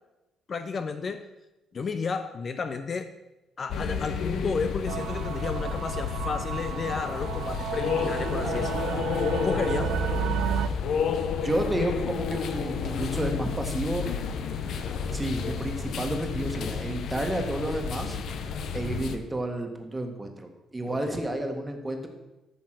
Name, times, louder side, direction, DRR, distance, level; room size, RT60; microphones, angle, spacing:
voice 1, 0.5-1.3 1.7-3.1 3.6-9.1 9.4-9.9 20.9-21.2, left 5 dB, 35° left, 9 dB, 0.6 m, -32 dB
sound 1, 3.7-19.2, left 6 dB, 65° left, 0.9 m, -31 dB
sound 2, 4.9-10.7, right 9 dB, 90° right, 0.6 m, -32 dB
voice 2, 8.4-8.7 11.4-14.0 15.1-18.2 18.7-22.1, right 1 dB, 15° right, 4 dB, 1.6 m, -31 dB
13.5 x 5.8 x 6.1 m, 1.0 s
cardioid pair, 125°, 0 cm